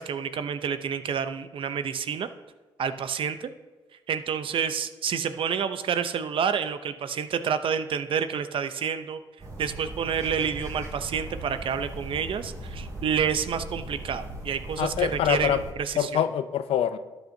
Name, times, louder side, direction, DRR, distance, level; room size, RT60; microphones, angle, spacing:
voice 1, 0.0-2.3 2.8-3.5 4.1-9.2 9.6-16.3, right 7 dB, 60° right, 11 dB, 0.7 m, -29 dB
sound 1, 9.4-15.7, right 1 dB, 35° right, 2.5 m, -39 dB
voice 2, 14.8-15.6 16.0-17.0, left 10 dB, 75° left, 12 dB, 0.5 m, -25 dB
13.0 x 9.2 x 2.7 m, 1.2 s
cardioid pair, 70°, 10 cm